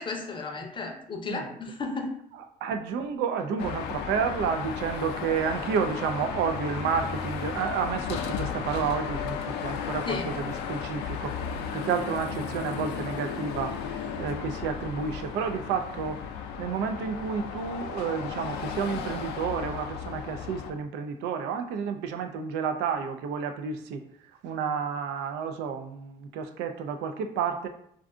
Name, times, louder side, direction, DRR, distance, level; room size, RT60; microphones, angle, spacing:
voice 1, 0.0-2.2 10.1-10.4, left 4 dB, 30° left, 3 dB, 0.6 m, -34 dB
voice 2, 2.6-11.4 11.7-16.2 16.6-24.0 24.4-27.7, right 6 dB, 85° right, 7 dB, 0.4 m, -30 dB
Car passing by / Traffic noise roadway noise / Engine, 3.6-20.7, left 7 dB, 85° left, 0.4 m, -34 dB
2.5 x 2.3 x 3.6 m, 0.68 s
cardioid pair, 110°, 17 cm